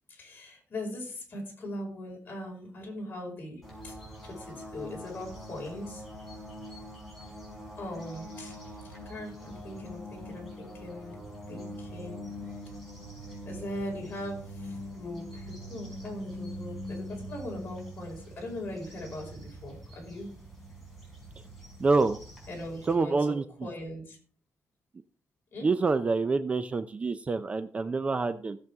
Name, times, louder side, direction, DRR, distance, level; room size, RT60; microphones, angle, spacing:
voice 1, 0.1-4.0 4.2-6.0 7.8-11.2 11.5-12.2 13.5-20.3 22.5-24.2 25.5-25.7, left 1 dB, 40° left, -1 dB, 5.2 m, -40 dB
sound 1, 3.6-22.9, equal, 5° left, 4.8 m, -43 dB
voice 2, 21.8-22.2 22.9-23.4 25.6-28.6, right 3 dB, 25° right, 11 dB, 0.5 m, -26 dB
16.5 x 7.7 x 3.6 m, 0.43 s
wide cardioid pair, 175°, 5 cm